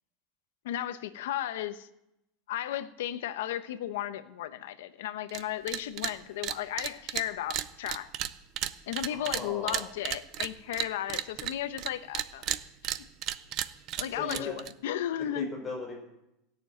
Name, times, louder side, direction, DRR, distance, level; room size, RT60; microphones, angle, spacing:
voice 1, 0.6-1.9 2.5-8.1 8.9-12.5 12.8-13.0 14.0-15.5, left 12 dB, 80° left, 11 dB, 1.0 m, -35 dB
sound 1, 5.3-5.4 5.7-6.1 6.4-11.9 12.1-14.7, right 12 dB, 30° right, 0.5 m, -33 dB
voice 2, 9.1-9.8 14.1-14.6 15.3-15.9, left 3 dB, 15° left, 0 dB, 4.5 m, -38 dB
16.5 x 7.0 x 9.3 m, 0.87 s
supercardioid pair, 180°, 0 cm